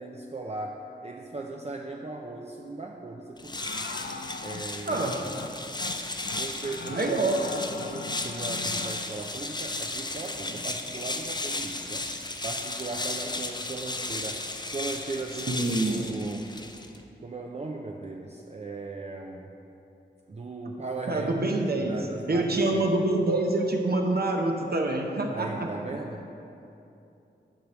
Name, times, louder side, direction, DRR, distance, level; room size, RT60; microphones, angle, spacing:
voice 1, 0.0-3.8 4.4-5.2 6.2-7.4 7.8-12.1 12.4-16.5 17.2-19.5 20.3-23.0 25.3-26.3, right 3 dB, 35° right, 0 dB, 0.5 m, -38 dB
sound 1, 3.4-17.0, left 2 dB, 25° left, 0.5 m, -35 dB
sound 2, 3.6-5.0 5.3-5.5 5.8-6.0 6.3-9.0, left 4 dB, 75° left, 0.5 m, -39 dB
voice 2, 4.9-5.2 6.9-7.4 15.5-16.1 21.1-22.0 22.3-25.7, right 2 dB, 55° right, 1 dB, 0.9 m, -26 dB
10.0 x 3.4 x 6.2 m, 2.8 s
wide cardioid pair, 65°, 19 cm